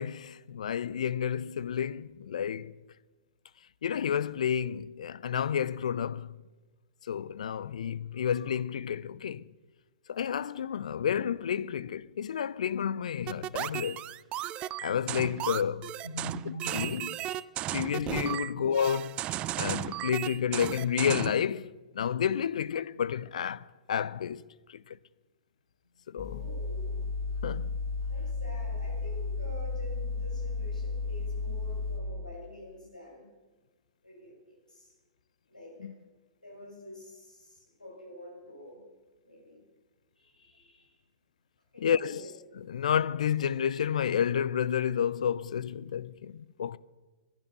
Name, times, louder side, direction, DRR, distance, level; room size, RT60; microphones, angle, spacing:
voice 1, 0.0-2.7 3.8-6.4 7.1-9.5 10.1-14.0 14.8-15.9 16.5-17.1 17.7-19.2 19.6-24.4 24.7-25.0 26.1-26.4 27.4-27.7 35.8-35.9 41.8-42.2 42.6-46.8, left 8 dB, 60° left, 0.5 m, -30 dB
sound 1, 13.3-21.4, right 13 dB, 25° right, 0.4 m, -35 dB
voice 2, 16.0-16.9 17.9-18.2 18.5-18.6 26.2-27.0 28.1-33.3 34.0-34.9 35.5-35.7 36.4-38.8 39.2-39.6 40.2-41.0 41.7-42.3, left 1 dB, 85° left, 6.2 m, -46 dB
sound 2, 26.2-32.0, left 3 dB, ahead, 3.3 m, -33 dB
16.5 x 11.5 x 6.7 m
figure-of-eight pair, 105°, 4 cm